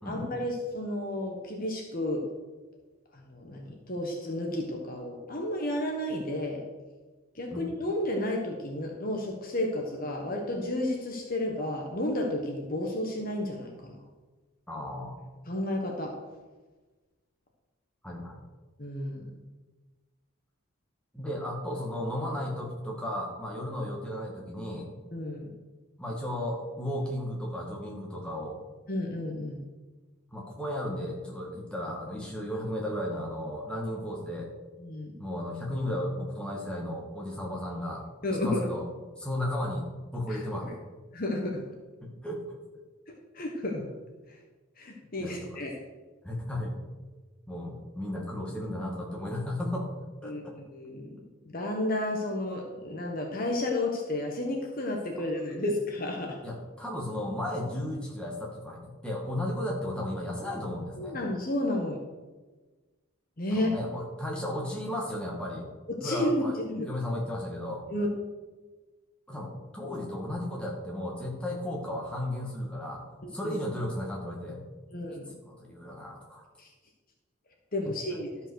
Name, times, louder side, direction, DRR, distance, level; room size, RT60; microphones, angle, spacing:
voice 1, 0.0-2.2 3.1-6.6 7.3-14.0 15.5-16.2 18.8-19.3 25.1-25.5 28.9-29.6 34.8-35.1 38.2-38.6 40.3-40.7 41.1-41.6 43.1-43.9 44.3-44.4 44.8-45.7 50.2-50.4 50.7-51.1 51.5-56.4 61.0-62.0 63.4-63.7 65.9-66.4 66.7-66.9 67.9-68.1 73.2-73.5 74.9-75.3 76.6-76.7 77.7-78.3, left 1 dB, 40° left, 1 dB, 1.2 m, -32 dB
voice 2, 14.7-15.3 18.0-18.4 21.1-24.9 26.0-28.6 30.3-34.5 35.2-38.0 38.3-38.9 39.2-39.9 40.1-40.8 42.0-42.4 45.2-45.6 46.2-46.7 47.5-49.9 50.2-50.5 56.4-61.2 63.5-65.7 66.0-66.6 66.8-67.8 69.3-73.1 73.3-74.6 75.3-76.4, left 1 dB, 5° left, -2 dB, 1.9 m, -34 dB
12.5 x 5.5 x 6.4 m, 1.3 s
head